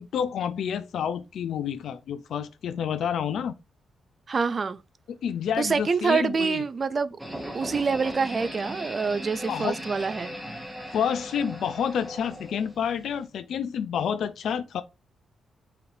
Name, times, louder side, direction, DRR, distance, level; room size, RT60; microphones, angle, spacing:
voice 1, 0.0-3.6 5.1-6.6 9.5-9.8 10.9-14.8, left 8 dB, 75° left, 0.4 m, -29 dB
voice 2, 4.3-4.8 5.6-7.2 7.5-10.3, right 5 dB, 35° right, 0.3 m, -26 dB
sound 1, 7.2-13.3, equal, 5° right, 1.0 m, -38 dB
4.9 x 3.1 x 2.7 m
cardioid pair, 135°, 0 cm